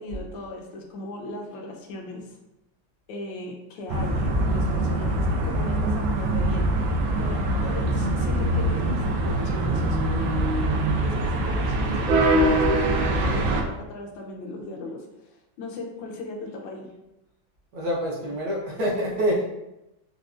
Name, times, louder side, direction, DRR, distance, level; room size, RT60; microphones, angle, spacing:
voice 1, 0.0-2.4 3.1-6.7 7.2-10.3 11.0-15.3 15.6-16.9, left 2 dB, 80° left, 1 dB, 1.3 m, -37 dB
sound 1, 3.9-13.6, right 1 dB, 80° right, 1.3 m, -23 dB
voice 2, 17.7-19.4, equal, 65° right, -4 dB, 1.3 m, -26 dB
4.8 x 2.2 x 2.4 m, 0.89 s
omnidirectional pair, 2.1 m